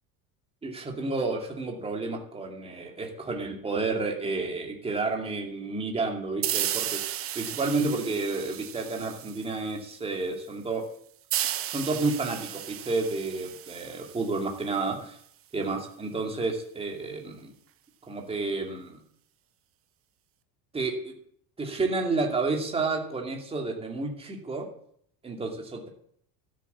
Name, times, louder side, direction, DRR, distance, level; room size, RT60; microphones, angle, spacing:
voice 1, 0.6-10.8 11.6-15.2 15.5-17.5 18.1-19.0 20.7-21.1 21.6-24.7 25.2-25.9, right 3 dB, 15° right, 2 dB, 2.5 m, -30 dB
sound 1, 6.4-9.8 11.3-14.8, right 11 dB, 30° right, 0.9 m, -34 dB
13.0 x 7.5 x 8.4 m, 0.64 s
cardioid pair, 155°, 42 cm